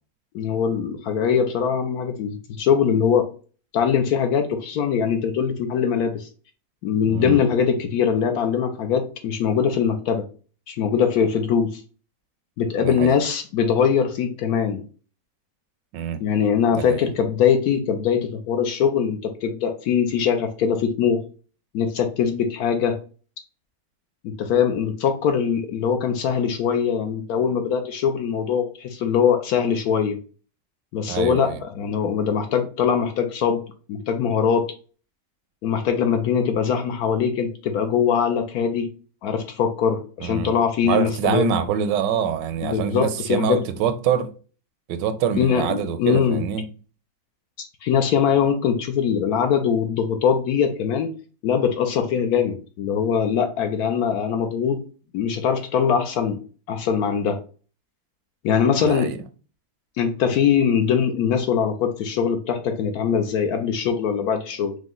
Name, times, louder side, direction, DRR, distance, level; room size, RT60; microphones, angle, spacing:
voice 1, 0.3-3.3 3.7-6.3 6.8-10.3 10.7-11.8 12.6-14.8 16.2-21.2 21.7-23.0 24.2-30.2 30.9-33.6 33.9-34.7 35.6-38.9 39.2-41.5 42.6-43.6 45.4-46.4 47.6-51.1 51.4-54.8 55.1-56.4 56.7-57.4 58.4-59.1 60.0-64.8, left 7 dB, 70° left, 0.9 m, -22 dB
voice 2, 7.1-7.4 12.8-13.2 15.9-16.2 16.7-17.1 31.1-31.6 40.2-40.6 40.8-44.3 44.9-46.6 58.8-59.2, right 8 dB, 85° right, 1.2 m, -25 dB
4.9 x 2.1 x 3.7 m
omnidirectional pair, 1.9 m